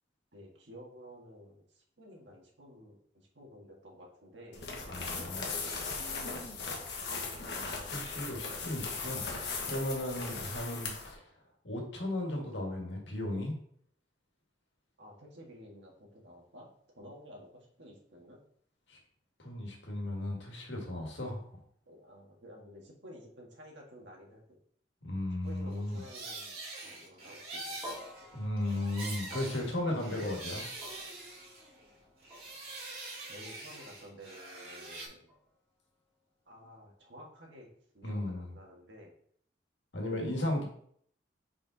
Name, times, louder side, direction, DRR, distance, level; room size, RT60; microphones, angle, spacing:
voice 1, 0.3-4.6 5.2-6.2 10.3-10.9 15.0-16.7 16.9-18.4 21.9-24.6 25.4-27.9 33.2-35.3 36.5-37.7 37.9-39.1 40.0-40.3, equal, 80° right, -1 dB, 1.8 m, -52 dB
sound 1, 4.5-11.1, left 4 dB, 65° left, 1.2 m, -38 dB
voice 2, 4.9-5.5 7.9-9.2 9.6-10.9 11.6-13.6 18.9-19.0 19.4-21.4 25.0-26.0 28.3-30.7 38.0-38.5 39.9-40.6, left 1 dB, 80° left, 0 dB, 1.8 m, -35 dB
sound 2, 25.7-31.9 32.2-35.1, right 2 dB, 50° right, 2.3 m, -44 dB
sound 3, 27.8-36.1, left 1 dB, 5° right, 1.9 m, -52 dB
4.9 x 4.9 x 4.0 m, 0.63 s
head